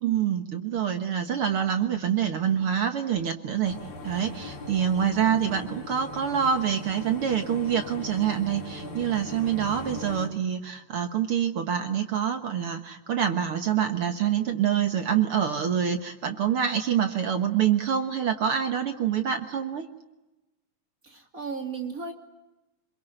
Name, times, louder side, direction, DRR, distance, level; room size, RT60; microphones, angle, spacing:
voice 1, 0.0-3.8 4.0-19.8, right 8 dB, 55° right, 6 dB, 1.6 m, -26 dB
sound 1, 3.6-10.3, left 1 dB, 80° left, 5.4 m, -39 dB
voice 2, 21.0-22.1, right 5 dB, 25° right, 3 dB, 2.4 m, -35 dB
27.0 x 22.5 x 9.0 m, 1.0 s
omnidirectional pair, 4.0 m